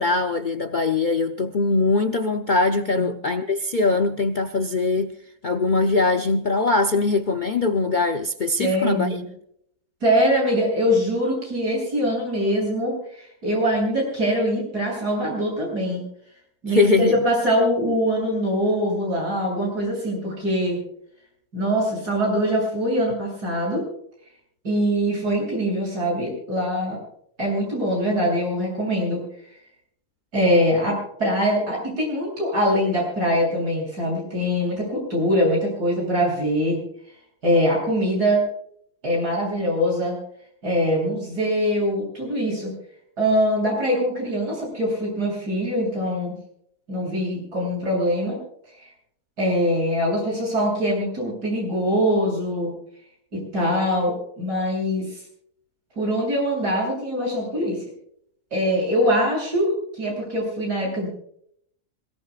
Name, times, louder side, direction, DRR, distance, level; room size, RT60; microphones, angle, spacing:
voice 1, 0.0-5.1 5.4-9.1 16.7-17.2, left 3 dB, 50° left, 0.6 m, -21 dB
voice 2, 8.6-9.3 10.0-16.0 16.6-20.8 21.5-23.8 24.6-27.0 27.4-29.2 30.3-36.8 37.4-38.4 39.0-40.2 40.6-42.7 43.2-46.3 46.9-48.4 48.8-48.9 49.4-52.7 53.3-55.1 56.0-57.8 58.5-61.1, equal, 90° right, 8.7 m, -23 dB
26.5 x 17.5 x 2.4 m
omnidirectional pair, 1.7 m